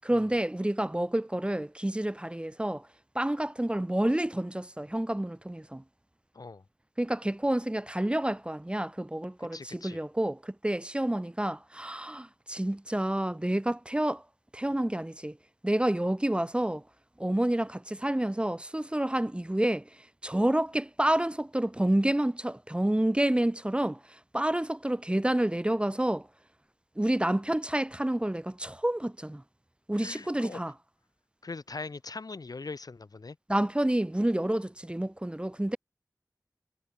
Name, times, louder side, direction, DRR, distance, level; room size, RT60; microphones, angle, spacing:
voice 1, 0.0-2.9 3.1-5.8 7.0-14.2 14.5-15.4 15.6-16.8 17.2-19.8 20.2-26.3 27.0-29.4 29.9-30.7 33.5-35.8, right 1 dB, 15° right, 0.9 m, -29 dB
voice 2, 9.5-10.0 30.0-30.6 31.4-33.4, left 3 dB, 75° left, 4.1 m, -41 dB
wide cardioid pair, 55°, 7 cm